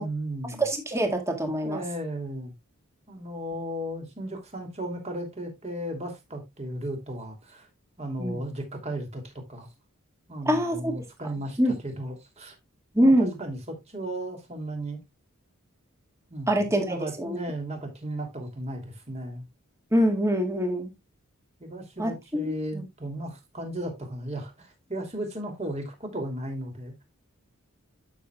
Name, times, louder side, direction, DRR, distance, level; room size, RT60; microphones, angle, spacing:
voice 1, 0.0-0.6 1.6-2.5 3.1-7.7 8.0-9.2 9.5-9.7 10.3-11.6 11.8-12.5 13.0-15.0 16.3-19.4 21.6-27.0, right 1 dB, 30° right, 2.8 m, -35 dB
voice 2, 0.6-1.8 8.2-8.4 10.5-11.0 11.6-11.7 12.9-13.3 16.5-17.4 19.9-20.9 22.0-22.5 22.7-22.8, equal, 15° right, 1.9 m, -24 dB
11.5 x 6.7 x 2.3 m
head